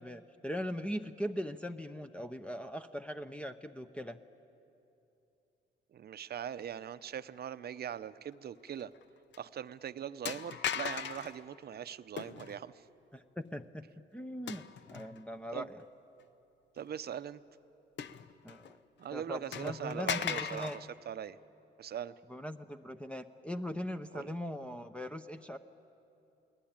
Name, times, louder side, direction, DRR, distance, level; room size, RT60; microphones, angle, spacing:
voice 1, 0.0-4.2 13.1-13.8 14.1-15.8 18.4-18.8 19.1-20.8 22.3-25.6, equal, 5° left, 4 dB, 0.7 m, -40 dB
voice 2, 5.9-8.9 9.4-12.8 15.5-15.7 16.8-17.4 19.0-21.4 21.8-22.1 24.1-24.3, right 9 dB, 50° right, 14 dB, 0.8 m, -41 dB
sound 1, 8.8-9.0 9.3-9.4 10.2-11.4 12.2-12.6 14.5-15.2 15.8-15.9 18.0-18.7 19.0-19.1 19.5-20.8, left 8 dB, 65° left, 0.9 m, -38 dB
29.0 x 19.5 x 8.8 m, 2.9 s
cardioid pair, 90°, 20 cm